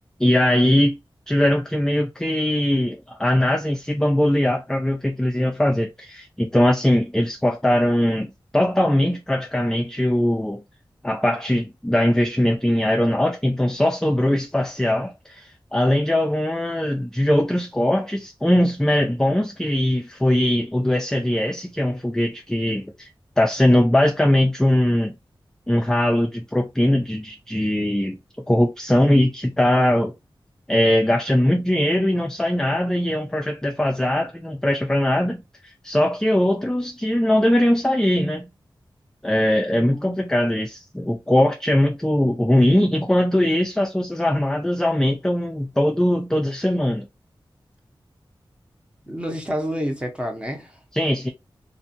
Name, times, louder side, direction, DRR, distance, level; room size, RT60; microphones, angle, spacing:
voice 1, 0.2-1.0 1.3-10.6 11.0-23.1 23.4-25.1 25.7-28.2 28.5-30.1 30.7-38.5 39.2-47.1 50.9-51.3, left 1 dB, 5° left, 0.3 m, -20 dB
voice 2, 39.7-40.1 49.1-50.8, equal, 10° right, 0.7 m, -29 dB
2.5 x 2.3 x 2.7 m
wide cardioid pair, 85°, 9 cm